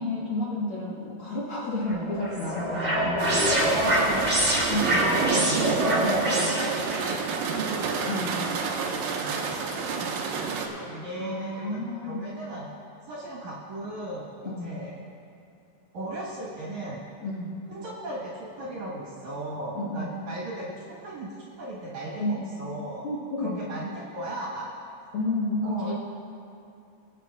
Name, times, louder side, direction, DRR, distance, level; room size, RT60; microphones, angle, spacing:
voice 1, 0.0-3.4 4.6-5.0 8.1-8.4 11.2-12.4 14.4-14.8 17.2-17.5 19.7-20.1 22.2-22.5 23.0-23.6 25.1-25.9, left 2 dB, 75° left, -7 dB, 1.2 m, -31 dB
sound 1, 1.9-7.1, right 1 dB, 30° right, 1.4 m, -25 dB
sound 2, 3.2-10.7, right 5 dB, 75° right, 2.1 m, -29 dB
voice 2, 3.7-8.1 8.6-12.7 13.1-15.0 15.9-17.0 17.7-23.1 23.4-24.7 25.6-25.9, right 1 dB, 60° right, -6 dB, 2.3 m, -37 dB
22.0 x 8.2 x 2.4 m, 2.7 s
omnidirectional pair, 4.6 m